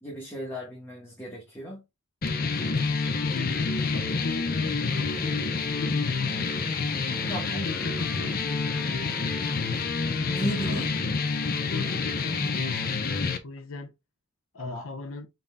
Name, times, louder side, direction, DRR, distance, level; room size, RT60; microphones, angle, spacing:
voice 1, 0.0-1.8 7.3-7.7 10.3-10.9 14.6-14.8, right 1 dB, 15° left, 1.3 m, -35 dB
sound 1, 2.2-13.4, left 4 dB, 45° left, 0.6 m, -28 dB
voice 2, 2.8-6.1 6.8-6.9 7.6-9.4 10.6-10.9 11.5-13.9 14.5-15.3, left 3 dB, 90° left, 0.8 m, -38 dB
Wind instrument woodwind instrument, 6.6-12.0, left 2 dB, 10° right, 2.0 m, -50 dB
5.5 x 3.9 x 2.2 m
head